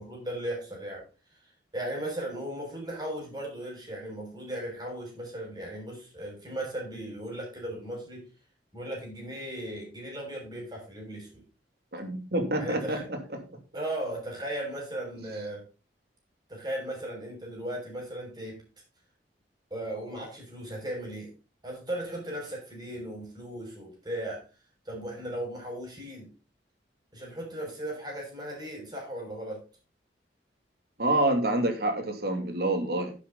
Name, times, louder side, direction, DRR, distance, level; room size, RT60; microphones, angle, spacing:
voice 1, 0.0-1.4 1.7-8.3 8.7-11.4 12.6-13.1 13.7-15.7 16.5-18.6 19.7-21.3 21.6-24.4 24.8-26.3 27.1-29.6, right 1 dB, 25° right, 0 dB, 6.2 m, -37 dB
voice 2, 11.9-13.4 31.0-33.1, right 1 dB, 60° right, 5 dB, 2.7 m, -27 dB
11.0 x 8.7 x 4.0 m, 0.33 s
head